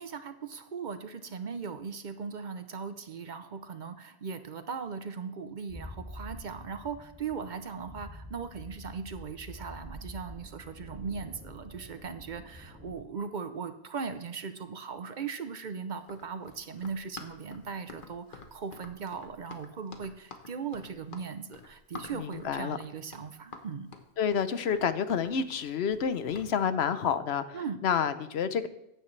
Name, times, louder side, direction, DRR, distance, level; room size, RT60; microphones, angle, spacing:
voice 1, 0.0-23.9 27.5-27.8, right 5 dB, 50° right, 9 dB, 0.8 m, -39 dB
sound 1, 5.7-13.0, equal, 15° right, 2.2 m, -47 dB
Run, 16.0-26.5, left 4 dB, 55° left, 1.2 m, -48 dB
voice 2, 22.1-22.8 24.2-27.6 27.8-28.7, left 7 dB, 80° left, 12 dB, 1.0 m, -29 dB
14.5 x 9.9 x 3.2 m, 0.85 s
omnidirectional pair, 1.1 m